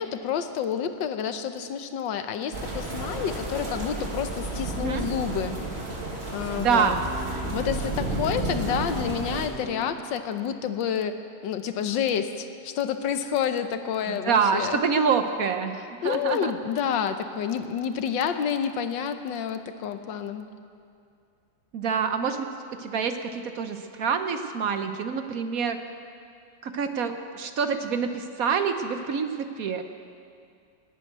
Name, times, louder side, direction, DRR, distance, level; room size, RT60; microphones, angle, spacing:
voice 1, 0.0-5.6 6.3-7.0 7.5-11.2 11.4-14.8 16.0-20.5, left 8 dB, 85° left, 9 dB, 1.6 m, -29 dB
sound 1, 2.5-9.5, right 2 dB, 35° right, 2.2 m, -32 dB
voice 2, 6.6-7.1 14.1-15.7 16.0-16.5 21.7-22.5 22.8-25.8 26.6-29.8, right 6 dB, 60° right, 8 dB, 1.1 m, -26 dB
sound 2, 6.8-10.0, right 1 dB, 10° right, 2.4 m, -42 dB
17.0 x 9.2 x 9.3 m, 2.4 s
omnidirectional pair, 2.0 m